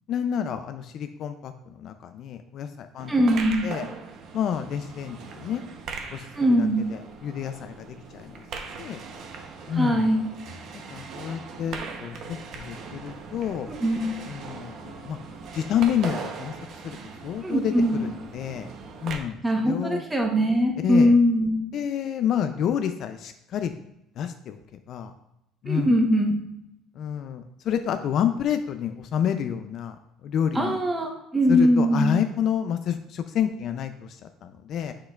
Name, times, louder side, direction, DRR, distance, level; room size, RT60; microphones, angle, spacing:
voice 1, 0.1-3.1 3.6-3.9 4.3-5.6 6.1-6.3 6.6-8.4 8.8-9.0 9.7-10.1 10.9-13.7 14.3-15.2 15.5-16.5 16.8-17.0 17.2-17.7 18.0-18.7 19.0-20.0 20.8-21.1 21.7-23.8 24.2-24.6 24.9-25.1 25.6-25.9 26.9-30.8 31.5-34.9, left 9 dB, 40° left, 8 dB, 0.3 m, -29 dB
sound 1, 3.0-19.2, right 5 dB, 45° right, 0.7 m, -40 dB
voice 2, 3.1-3.7 6.4-6.8 9.8-10.2 13.7-14.0 17.4-18.0 19.4-21.5 25.7-26.4 30.5-32.1, equal, 10° right, 2 dB, 0.9 m, -21 dB
7.7 x 6.5 x 2.3 m, 0.85 s
cardioid pair, 170°, 0 cm